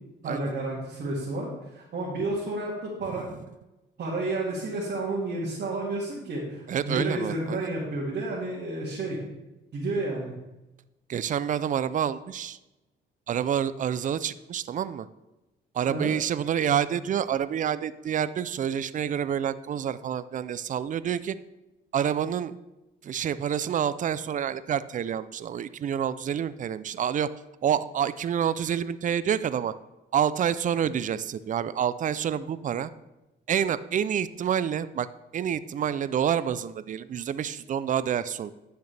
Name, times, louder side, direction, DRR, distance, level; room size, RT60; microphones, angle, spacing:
voice 1, 0.2-1.5 1.7-3.2 4.0-9.2 9.7-10.3 15.9-16.1, right 2 dB, 55° right, -5 dB, 2.0 m, -31 dB
voice 2, 6.7-7.7 11.1-12.6 13.3-15.1 15.7-21.4 21.9-22.6 23.0-27.3 27.6-29.7 30.1-32.9 33.5-35.1 35.3-38.5, right 9 dB, 40° right, 15 dB, 0.4 m, -28 dB
10.5 x 6.7 x 3.3 m, 0.98 s
cardioid pair, 90°, 20 cm